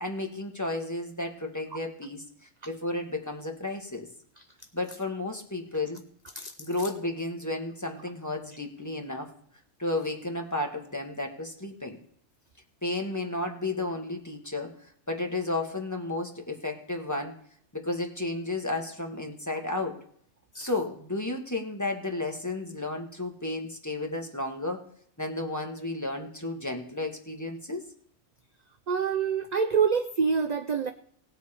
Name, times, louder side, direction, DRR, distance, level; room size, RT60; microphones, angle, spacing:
voice 1, 0.0-2.2 2.7-4.1 4.7-6.0 6.6-9.3 9.8-12.0 12.8-17.3 17.7-20.0 20.5-24.8 25.2-27.8, left 2 dB, 15° left, 3 dB, 1.5 m, -32 dB
voice 2, 28.9-30.9, right 6 dB, 50° right, 7 dB, 0.5 m, -26 dB
18.0 x 7.4 x 4.3 m, 0.63 s
omnidirectional pair, 1.3 m